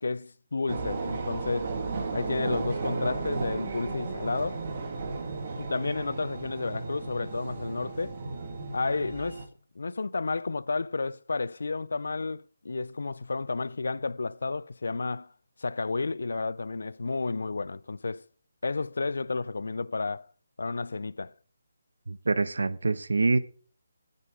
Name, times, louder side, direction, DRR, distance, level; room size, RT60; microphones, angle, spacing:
voice 1, 0.0-1.7 2.1-4.6 5.6-8.2 8.7-9.4 9.8-15.3 15.6-18.2 18.6-20.3 20.6-21.3, left 3 dB, 65° left, 0.5 m, -31 dB
sound 1, 0.7-9.5, right 3 dB, 25° right, 1.4 m, -34 dB
voice 2, 22.1-23.4, right 3 dB, 75° right, 1.1 m, -25 dB
15.5 x 8.4 x 4.9 m
hypercardioid pair, 180°, 0 cm